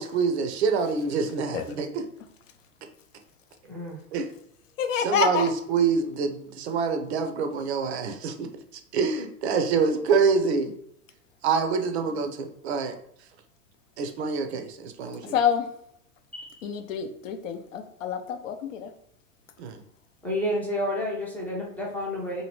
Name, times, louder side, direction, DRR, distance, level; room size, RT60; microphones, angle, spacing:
voice 1, 0.0-2.0 4.1-4.2 5.0-8.5 8.9-10.7 11.4-13.0 14.0-15.4 19.6-19.8, right 5 dB, 45° right, 6 dB, 0.5 m, -26 dB
voice 2, 4.8-5.5 15.2-15.7 16.6-18.9, left 7 dB, 55° left, 8 dB, 0.6 m, -27 dB
voice 3, 20.2-22.4, left 1 dB, 5° left, -3 dB, 0.4 m, -30 dB
2.7 x 2.7 x 3.0 m, 0.74 s
figure-of-eight pair, 95°, 46 cm